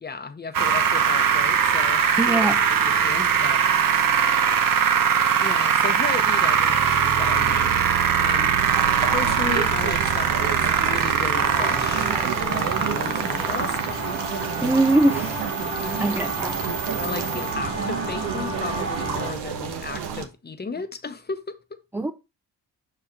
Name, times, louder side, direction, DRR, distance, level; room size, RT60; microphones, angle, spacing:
voice 1, 0.0-3.6 5.4-8.5 9.1-12.1 12.4-13.9 17.0-21.8, left 4 dB, 25° left, 0.8 m, -34 dB
sound 1, 0.5-17.5, right 7 dB, 55° right, 0.9 m, -22 dB
voice 2, 2.2-2.7 14.6-15.4 15.9-16.6 21.9-22.1, right 2 dB, 5° right, 0.4 m, -22 dB
sound 2, 8.6-20.2, right 7 dB, 80° right, 1.2 m, -32 dB
sound 3, 11.3-19.3, right 2 dB, 35° right, 1.8 m, -31 dB
5.5 x 4.5 x 3.8 m
cardioid pair, 80°, 39 cm